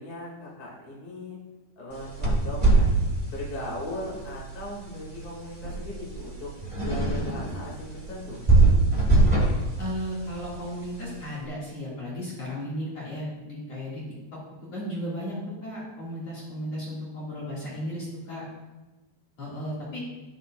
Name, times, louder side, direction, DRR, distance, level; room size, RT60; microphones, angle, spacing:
voice 1, 0.0-1.4 1.8-2.9 3.3-6.5 6.8-8.4, left 1 dB, 25° left, -5 dB, 2.3 m, -38 dB
sound 1, 1.9-11.3, right 2 dB, 30° right, 0.5 m, -24 dB
voice 2, 9.8-14.0 14.7-18.4 19.4-20.0, equal, 45° left, -7 dB, 2.9 m, -35 dB
11.0 x 11.0 x 2.5 m, 1.1 s
omnidirectional pair, 4.8 m